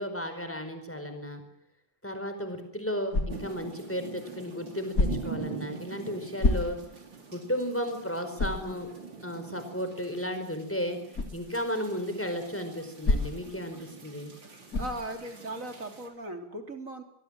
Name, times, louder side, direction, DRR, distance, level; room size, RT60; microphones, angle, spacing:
voice 1, 0.0-1.4 2.0-6.8 7.3-8.9 9.2-11.0 11.3-14.3, equal, 5° left, 7 dB, 4.9 m, -34 dB
sound 1, 3.1-3.6 4.9-5.4 6.4-7.0 7.5-7.6 8.4-8.7 11.1-11.4 13.0-13.5 14.7-15.1, left 2 dB, 50° left, 3.9 m, -27 dB
sound 2, 3.3-16.1, right 5 dB, 90° right, 4.8 m, -44 dB
voice 2, 14.8-17.0, right 1 dB, 45° right, 5 dB, 3.7 m, -38 dB
23.5 x 22.5 x 7.6 m, 0.72 s
omnidirectional pair, 2.0 m